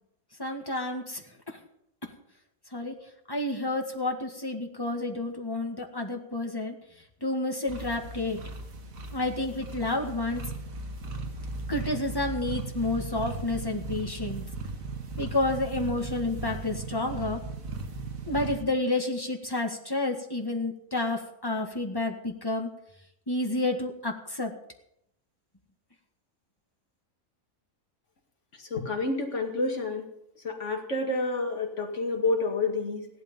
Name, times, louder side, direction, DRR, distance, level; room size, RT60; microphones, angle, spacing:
voice 1, 0.4-1.6 2.7-3.0 3.3-6.8 7.2-8.4 9.1-10.5 11.7-14.4 15.2-17.4 18.3-22.7 23.3-24.5, left 2 dB, 15° left, 2 dB, 1.8 m, -30 dB
sound 1, 7.7-18.6, right 3 dB, 85° right, 1.9 m, -37 dB
voice 2, 28.7-30.1 30.4-33.1, left 3 dB, 60° left, 3 dB, 2.4 m, -29 dB
16.0 x 11.5 x 5.4 m, 0.78 s
omnidirectional pair, 1.4 m